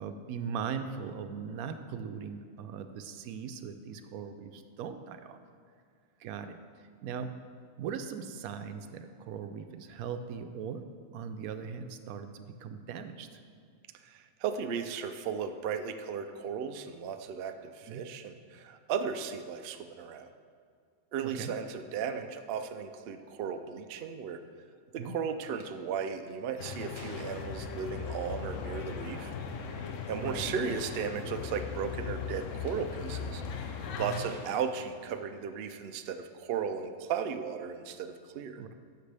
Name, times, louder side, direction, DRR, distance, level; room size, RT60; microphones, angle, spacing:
voice 1, 0.0-5.4 6.2-6.6 7.0-7.3 7.8-10.8 11.1-13.3 17.9-18.0 21.2-21.6 25.0-25.2 30.1-30.8 34.0-34.3 38.6-38.7, right 6 dB, 90° right, 8 dB, 1.0 m, -39 dB
voice 2, 14.0-20.3 21.1-24.4 24.9-29.3 30.1-33.4 34.0-38.6, right 6 dB, 65° right, 8 dB, 0.6 m, -35 dB
sound 1, 25.6-25.7 26.3-28.1 29.4-29.6 30.2-30.3 30.5-31.0 31.7-32.7 33.3-33.6 34.1-35.5, left 1 dB, 20° left, 1.1 m, -50 dB
sound 2, 26.6-34.2, left 5 dB, 65° left, 1.0 m, -38 dB
11.5 x 6.6 x 3.4 m, 2.2 s
omnidirectional pair, 1.5 m